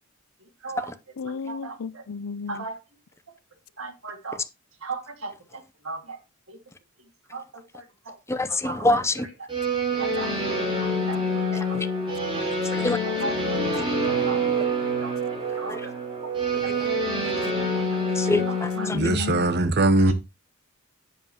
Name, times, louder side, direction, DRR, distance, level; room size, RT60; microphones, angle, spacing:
voice 1, 1.2-2.7 18.4-18.5 18.8-19.5, left 5 dB, 75° left, 0.5 m, -33 dB
voice 2, 3.8-4.4 4.8-5.3 5.9-6.0 7.3-7.4 8.7-8.8 10.2-10.3 11.1-11.2 13.2-13.3 13.7-13.9 14.3-14.4 15.0-15.1 15.6-15.8, right 3 dB, 75° right, 2.1 m, -33 dB
voice 3, 8.3-9.3 11.5-11.9 12.6-13.0 15.7-15.8 16.5-16.9 18.1-19.2, left 2 dB, 15° left, 0.7 m, -26 dB
sound 1, 9.5-19.0, right 1 dB, 25° right, 3.1 m, -26 dB
voice 4, 18.9-20.1, right 2 dB, 50° right, 1.0 m, -20 dB
11.0 x 7.5 x 3.0 m
head